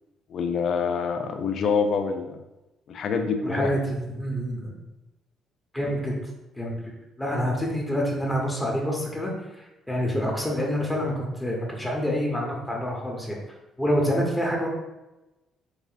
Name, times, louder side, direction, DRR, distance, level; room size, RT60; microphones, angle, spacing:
voice 1, 0.3-2.4 2.9-3.8, left 5 dB, 50° left, 6 dB, 0.4 m, -26 dB
voice 2, 3.4-4.8 5.7-6.1 6.6-6.8 7.2-13.4 13.8-14.7, equal, 10° left, -2 dB, 1.0 m, -27 dB
4.7 x 2.5 x 2.6 m, 0.98 s
figure-of-eight pair, 45°, 0 cm